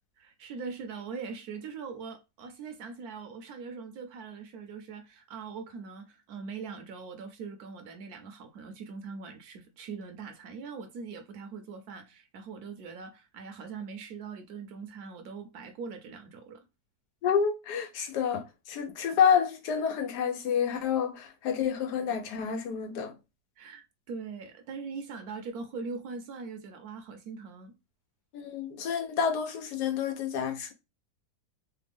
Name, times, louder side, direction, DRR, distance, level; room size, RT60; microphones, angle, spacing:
voice 1, 0.2-16.6 23.6-27.7, right 5 dB, 70° right, 1.1 m, -41 dB
voice 2, 17.2-23.1 28.3-30.7, left 7 dB, 85° left, 1.2 m, -29 dB
3.3 x 2.1 x 3.4 m
omnidirectional pair, 1.7 m